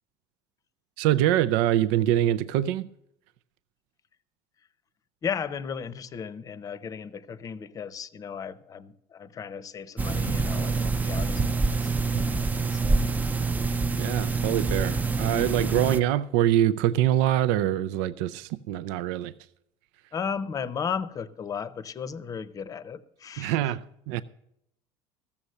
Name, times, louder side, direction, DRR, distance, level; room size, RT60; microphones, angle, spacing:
voice 1, 1.0-2.9 10.3-10.4 12.1-12.2 13.9-19.3 23.4-24.2, right 12 dB, 90° right, 0.5 m, -24 dB
voice 2, 5.2-13.1 20.1-23.5, left 6 dB, 30° left, 0.7 m, -35 dB
sound 1, 10.0-16.0, right 4 dB, 15° right, 0.4 m, -26 dB
14.5 x 7.2 x 6.5 m
cardioid pair, 140°, 12 cm